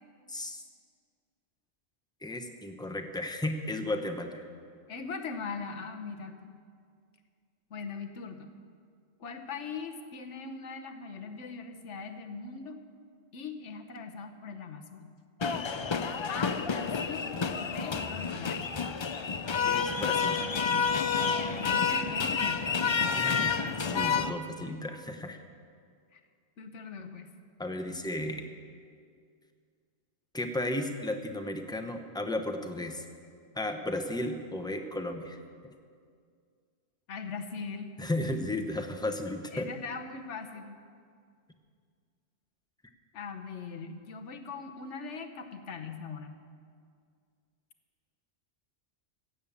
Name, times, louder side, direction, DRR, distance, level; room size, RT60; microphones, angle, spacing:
voice 1, 0.3-0.6 2.2-4.5 19.6-20.4 23.1-25.4 27.6-28.4 30.3-33.0 33.5-35.4 35.6-35.7 38.0-39.7, left 1 dB, 5° left, 5 dB, 0.7 m, -34 dB
voice 2, 4.9-6.5 7.7-8.5 9.2-12.8 13.3-15.1 16.3-18.7 21.4-22.7 26.1-26.2 26.6-27.3 37.1-38.0 39.5-40.8 43.1-46.4, left 5 dB, 90° left, 6 dB, 1.3 m, -40 dB
sound 1, 15.4-24.3, left 5 dB, 45° left, 0.3 m, -29 dB
16.0 x 8.5 x 7.1 m, 2.2 s
omnidirectional pair, 1.2 m